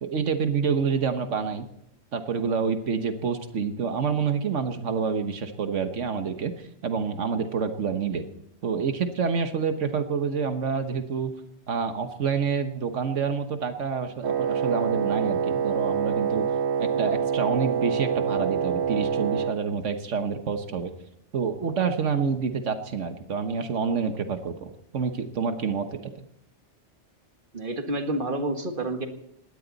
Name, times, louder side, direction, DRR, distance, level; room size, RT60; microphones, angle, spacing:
voice 1, 0.0-1.6 2.1-8.2 8.6-11.3 11.7-16.5 16.8-20.9 21.3-26.1, right 6 dB, 85° right, 7 dB, 1.5 m, -27 dB
Wind instrument woodwind instrument, 14.2-19.6, right 7 dB, 70° right, 1.0 m, -26 dB
voice 2, 27.5-29.1, right 2 dB, 45° right, 5 dB, 1.9 m, -29 dB
20.5 x 17.0 x 4.0 m, 0.75 s
omnidirectional pair, 1.2 m